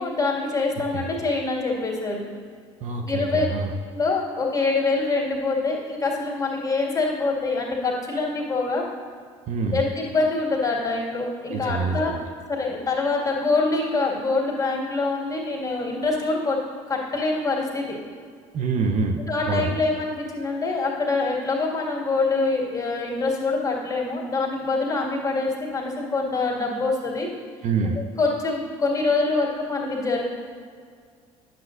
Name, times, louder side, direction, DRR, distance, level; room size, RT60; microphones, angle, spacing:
voice 1, 0.0-2.2 3.0-3.5 3.9-8.8 9.7-12.2 12.5-16.6 16.9-17.9 19.3-27.3 28.2-30.2, left 3 dB, 20° left, -2 dB, 1.9 m, -25 dB
voice 2, 2.8-3.7 9.5-9.8 11.5-12.2 18.5-19.8 27.6-28.0, right 4 dB, 50° right, 3 dB, 0.7 m, -26 dB
9.9 x 7.2 x 2.5 m, 2.1 s
hypercardioid pair, 60°, 16 cm